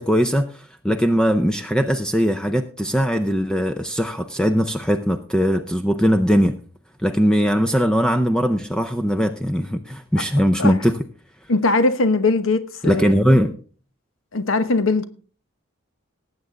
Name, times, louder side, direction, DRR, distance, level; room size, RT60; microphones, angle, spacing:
voice 1, 0.0-6.6 7.0-11.0 12.8-13.6, equal, 5° left, 0.5 m, -20 dB
voice 2, 11.5-13.1 14.3-15.0, left 3 dB, 70° left, 1.1 m, -20 dB
19.0 x 8.0 x 3.7 m
head